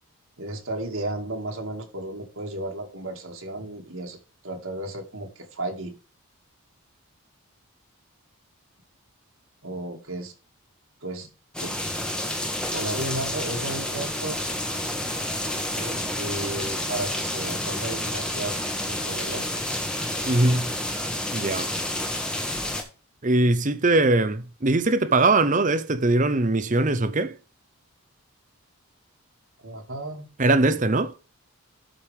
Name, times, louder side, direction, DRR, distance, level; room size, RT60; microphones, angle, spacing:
voice 1, 0.4-4.2 4.4-5.9 9.6-10.3 11.0-11.3 11.6-11.8 12.6-14.4 15.7-18.6 18.9-19.6 29.6-30.3 30.6-30.8, right 2 dB, 65° right, 2.2 m, -34 dB
sound 1, 11.5-22.8, left 1 dB, 5° left, 1.2 m, -29 dB
voice 2, 20.3-20.7 21.3-21.7 23.2-27.3 30.4-31.1, right 2 dB, 35° right, 0.7 m, -21 dB
12.0 x 5.0 x 3.5 m
head